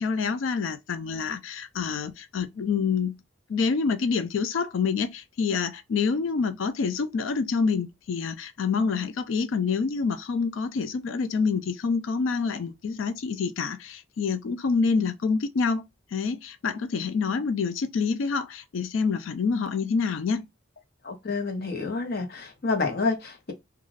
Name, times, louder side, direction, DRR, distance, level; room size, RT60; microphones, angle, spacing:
voice 1, 0.0-3.1 3.5-15.8 16.1-20.5, left 5 dB, 90° left, 0.4 m, -27 dB
voice 2, 21.0-23.5, left 4 dB, 55° left, 0.8 m, -28 dB
2.4 x 2.3 x 3.2 m
head